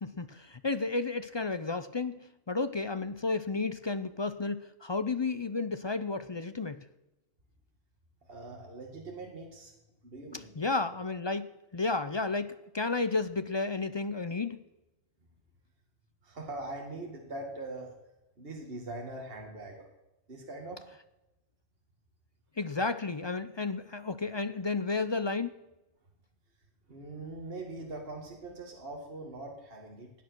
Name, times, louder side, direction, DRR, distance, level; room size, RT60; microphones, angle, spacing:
voice 1, 0.0-2.2 2.5-6.8 10.3-11.5 11.7-14.6 22.6-25.5, left 3 dB, 40° left, 12 dB, 0.4 m, -32 dB
voice 2, 8.3-9.7 10.0-10.5 16.2-17.9 18.4-19.9 20.3-20.9 26.9-30.1, right 2 dB, 50° right, 1 dB, 2.2 m, -42 dB
17.0 x 9.4 x 6.2 m, 0.99 s
omnidirectional pair, 1.3 m